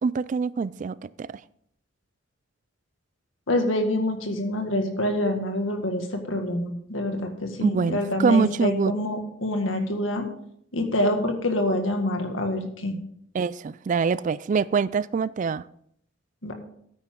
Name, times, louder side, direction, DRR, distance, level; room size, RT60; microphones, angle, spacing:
voice 1, 0.0-1.4 7.6-8.9 13.3-15.6, right 5 dB, 40° right, 0.3 m, -24 dB
voice 2, 3.5-10.3 10.7-13.0 16.4-16.5, left 1 dB, 80° left, 1.9 m, -26 dB
12.5 x 9.7 x 3.8 m
head